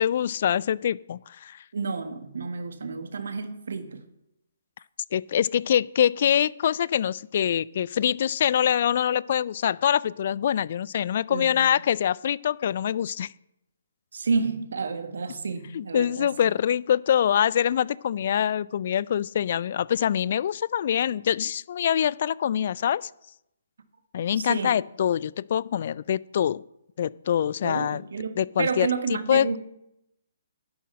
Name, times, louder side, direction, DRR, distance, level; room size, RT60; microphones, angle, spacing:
voice 1, 0.0-1.6 5.1-13.3 15.7-23.1 24.1-26.6 27.0-28.0 28.4-29.6, left 9 dB, 50° left, 22 dB, 0.3 m, -24 dB
voice 2, 1.7-4.0 11.3-11.6 14.1-16.5 24.4-24.8 27.6-29.6, right 4 dB, 65° right, 8 dB, 1.5 m, -30 dB
11.0 x 7.3 x 7.5 m, 0.84 s
figure-of-eight pair, 130°, 0 cm